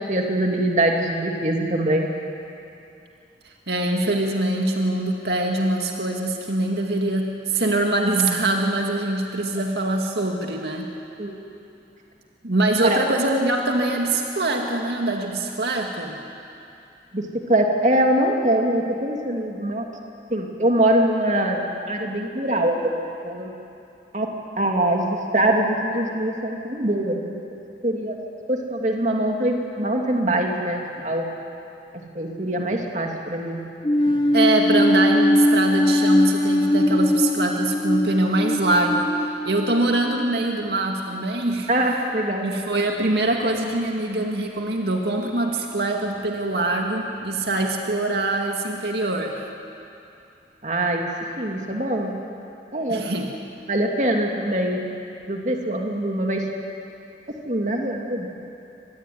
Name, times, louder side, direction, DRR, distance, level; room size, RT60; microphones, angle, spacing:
voice 1, 0.0-2.1 11.2-11.4 12.8-13.0 17.1-17.2 17.5-19.8 20.3-23.5 24.1-24.3 24.6-28.2 28.5-31.3 32.1-33.6 34.1-34.2 41.7-42.5 50.6-51.1 51.4-52.1 52.7-53.1 53.7-54.8 55.3-56.4 57.4-58.3, right 1 dB, 40° right, 1 dB, 2.8 m, -23 dB
voice 2, 3.4-10.9 12.4-16.2 34.3-39.1 39.4-41.7 42.4-49.5 52.9-53.3, right 2 dB, 70° right, 1 dB, 2.1 m, -23 dB
sound 1, 33.8-40.2, left 1 dB, 25° left, 1.8 m, -20 dB
25.5 x 21.0 x 9.6 m, 2.7 s
head